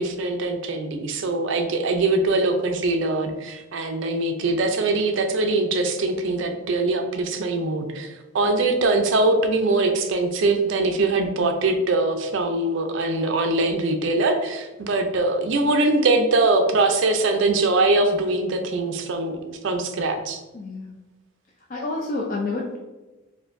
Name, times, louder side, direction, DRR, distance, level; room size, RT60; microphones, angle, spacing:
voice 1, 0.0-20.4, right 2 dB, 60° right, 6 dB, 0.4 m, -22 dB
voice 2, 20.5-21.0 21.7-22.8, left 2 dB, 40° left, -2 dB, 0.3 m, -29 dB
4.3 x 2.5 x 2.5 m, 1.1 s
head